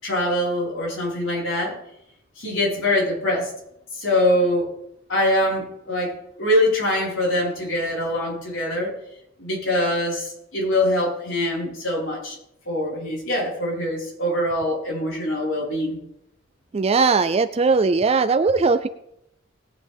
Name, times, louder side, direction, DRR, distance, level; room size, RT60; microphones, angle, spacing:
voice 1, 0.0-1.8 2.4-3.5 3.9-4.7 5.1-6.1 6.4-8.9 9.4-12.4 12.7-16.0, left 1 dB, 75° left, -3 dB, 4.6 m, -23 dB
voice 2, 16.7-18.9, right 4 dB, 30° right, 11 dB, 0.4 m, -19 dB
20.0 x 8.5 x 3.5 m, 0.81 s
head